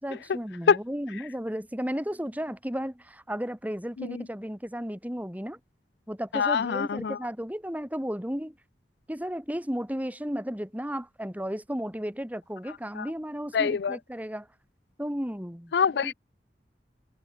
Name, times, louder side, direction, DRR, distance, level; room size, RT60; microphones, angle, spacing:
voice 1, 0.0-5.6 6.1-8.6 9.1-14.5 15.0-15.7 16.0-16.1, equal, 10° right, 4.1 m, -34 dB
voice 2, 6.3-7.2 13.5-14.0 15.7-16.1, left 6 dB, 65° left, 0.4 m, -24 dB
open air
head